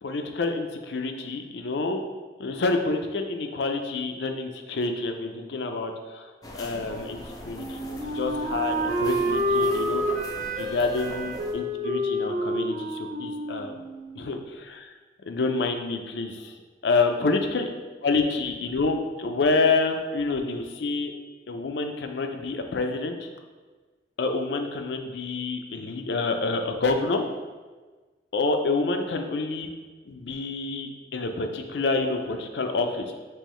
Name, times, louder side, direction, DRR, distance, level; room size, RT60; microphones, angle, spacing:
voice 1, 0.0-2.0 2.4-10.0 10.6-13.8 14.1-14.9 15.3-16.5 16.8-17.7 18.0-21.1 21.5-23.3 24.2-27.2 28.3-29.7 30.1-33.1, left 3 dB, 75° left, 5 dB, 0.5 m, -28 dB
sound 1, 6.4-11.5, left 1 dB, 20° left, 0.4 m, -42 dB
Wind instrument woodwind instrument, 7.5-14.4, equal, 45° right, 0.5 m, -28 dB
5.5 x 3.0 x 3.1 m, 1.3 s
head